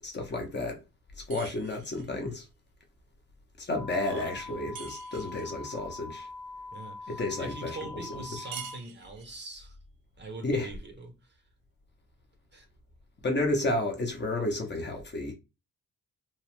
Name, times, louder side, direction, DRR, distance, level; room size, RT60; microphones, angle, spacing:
voice 1, 0.0-0.8 1.3-2.5 3.6-6.3 7.2-8.0 8.4-8.5 10.4-10.7 13.2-15.3, left 2 dB, 30° left, 0.6 m, -31 dB
sound 1, 1.3-2.1 4.8-5.5 8.5-9.4, right 8 dB, 85° right, 0.7 m, -45 dB
sound 2, 3.8-8.8, left 3 dB, 5° right, 0.8 m, -43 dB
voice 2, 4.0-4.3 6.7-9.8 10.2-11.4 12.5-12.7, right 3 dB, 30° right, 0.5 m, -43 dB
2.9 x 2.1 x 2.9 m
wide cardioid pair, 180°, 34 cm